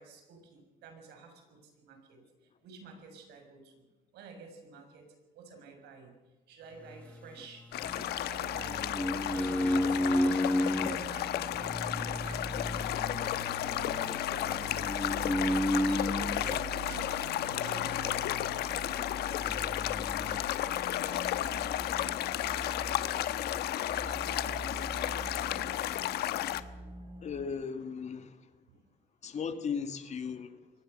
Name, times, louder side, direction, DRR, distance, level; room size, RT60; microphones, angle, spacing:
voice 1, 0.0-2.2 2.6-3.8 4.1-6.1 6.5-8.9 9.2-10.0 10.7-12.9 13.3-13.8 14.2-15.1 15.8-18.8 19.2-22.2 23.8-26.0 28.7-28.8, right 4 dB, 80° right, 5 dB, 6.4 m, -51 dB
sound 1, 6.8-8.0 8.5-11.0 11.6-16.6 17.5-18.7 19.0-19.1 19.4-20.4, left 1 dB, 5° left, 1.1 m, -33 dB
sound 2, 7.7-26.6, left 13 dB, 75° left, 1.1 m, -33 dB
sound 3, 7.8-27.4, right 2 dB, 30° right, 4.4 m, -45 dB
voice 2, 27.2-28.5 29.2-30.6, left 6 dB, 45° left, 9 dB, 2.1 m, -37 dB
23.5 x 19.5 x 6.7 m, 1.1 s
cardioid pair, 110°, 17 cm